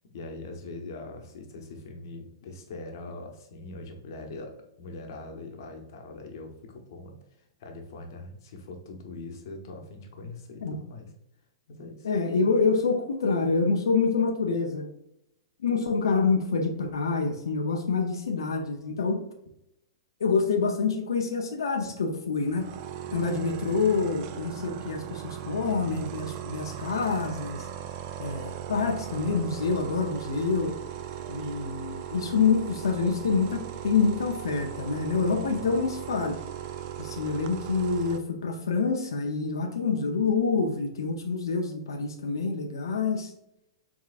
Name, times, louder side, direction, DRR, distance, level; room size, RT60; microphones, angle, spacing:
voice 1, 0.1-7.2 7.6-11.1 11.7-12.1 23.0-23.2 35.6-35.7, left 2 dB, 60° left, 3 dB, 1.0 m, -42 dB
voice 2, 12.0-14.9 15.6-19.2 20.2-22.7 23.1-27.7 28.2-30.7 31.3-36.3 37.0-43.3, left 4 dB, 75° left, 4 dB, 0.6 m, -27 dB
sound 1, 22.4-38.2, right 11 dB, 45° right, 0.4 m, -38 dB
4.8 x 3.5 x 2.4 m, 0.81 s
hypercardioid pair, 115°, 2 cm